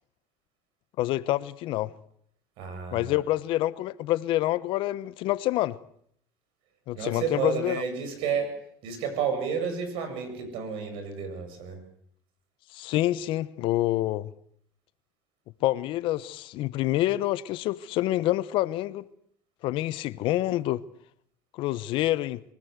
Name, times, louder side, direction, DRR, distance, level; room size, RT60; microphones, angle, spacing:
voice 1, 1.0-1.9 2.9-5.8 6.9-7.8 12.7-14.3 15.6-19.0 19.6-20.8 21.6-22.4, left 15 dB, 65° left, 1.0 m, -27 dB
voice 2, 2.6-3.2 6.9-8.5 8.8-11.8, right 6 dB, 65° right, 7.7 m, -31 dB
23.5 x 17.5 x 8.1 m
supercardioid pair, 95°, 9 cm